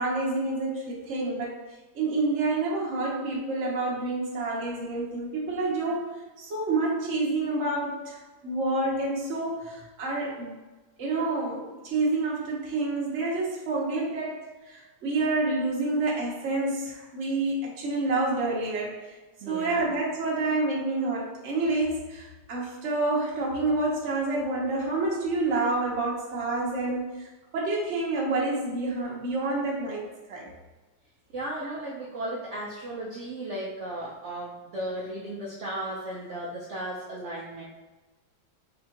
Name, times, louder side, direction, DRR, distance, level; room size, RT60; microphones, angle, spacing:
voice 1, 0.0-1.5 1.9-10.5 11.0-18.9 19.5-27.3 27.5-30.5, right 2 dB, 50° right, -4 dB, 1.0 m, -28 dB
voice 2, 19.4-19.8 31.3-37.6, right 1 dB, 70° right, -5 dB, 0.7 m, -35 dB
5.2 x 2.4 x 2.8 m, 1.2 s
omnidirectional pair, 2.0 m